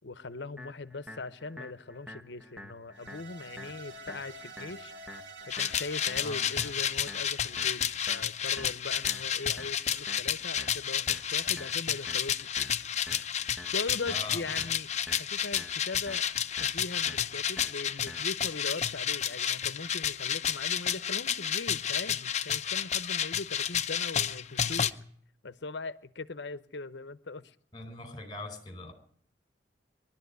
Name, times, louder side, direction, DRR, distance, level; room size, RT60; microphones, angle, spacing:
voice 1, 0.0-5.3 5.5-12.7 13.7-16.3 16.6-25.0 25.4-27.6, left 3 dB, 70° left, 0.9 m, -40 dB
sound 1, 0.6-18.6, left 1 dB, 5° right, 1.2 m, -49 dB
sound 2, 2.9-8.2, right 2 dB, 85° right, 2.2 m, -49 dB
sound 3, 5.5-24.9, left 9 dB, 40° left, 0.8 m, -31 dB
voice 2, 14.1-14.6 27.7-28.9, left 2 dB, 25° left, 4.3 m, -41 dB
23.0 x 12.0 x 9.4 m
head